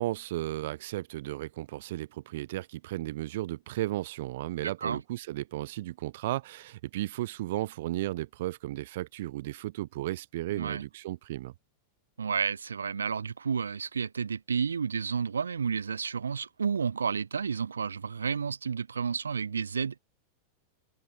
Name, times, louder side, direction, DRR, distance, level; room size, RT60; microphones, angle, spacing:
voice 1, 0.0-11.5, right 16 dB, 55° right, 5.0 m, -34 dB
voice 2, 4.6-5.0 10.5-10.8 12.2-20.0, right 6 dB, 70° right, 7.1 m, -31 dB
figure-of-eight pair, 90°, 0 cm